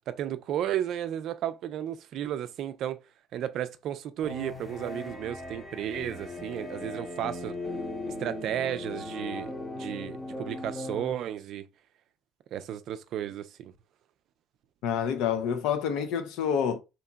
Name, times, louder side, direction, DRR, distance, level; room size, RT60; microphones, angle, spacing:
voice 1, 0.1-3.0 3.3-7.5 8.2-11.6 12.5-13.7, right 10 dB, 65° right, 0.3 m, -33 dB
sound 1, 4.2-11.1, left 2 dB, 15° left, 0.7 m, -38 dB
voice 2, 14.8-16.8, left 8 dB, 75° left, 0.4 m, -28 dB
2.8 x 2.7 x 2.2 m
hypercardioid pair, 65°, 0 cm